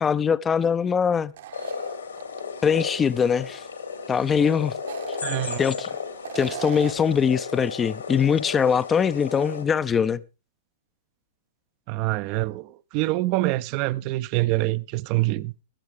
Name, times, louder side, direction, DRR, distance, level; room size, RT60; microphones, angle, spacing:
voice 1, 0.0-1.3 2.6-3.6 4.1-4.8 5.6-5.9 6.3-10.2, left 7 dB, 20° left, 0.5 m, -22 dB
sound 1, 1.3-2.4 2.8-2.9 4.7-5.8 6.2-7.1, right 10 dB, 60° right, 1.1 m, -37 dB
sound 2, 1.5-9.6, left 5 dB, 75° left, 2.9 m, -34 dB
voice 2, 5.2-5.6 11.9-15.5, right 19 dB, 40° right, 0.5 m, -25 dB
22.0 x 8.1 x 3.4 m
figure-of-eight pair, 100°, 0 cm